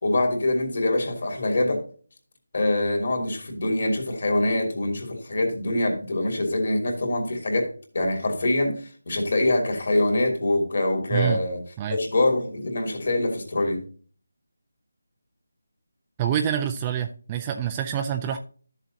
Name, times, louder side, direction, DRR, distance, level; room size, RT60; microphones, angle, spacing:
voice 1, 0.0-1.8 2.5-11.6 11.9-13.8, left 1 dB, 45° left, 3.0 m, -24 dB
voice 2, 16.2-18.4, right 9 dB, 15° right, 0.4 m, -26 dB
12.5 x 7.3 x 2.8 m
figure-of-eight pair, 175°, 0 cm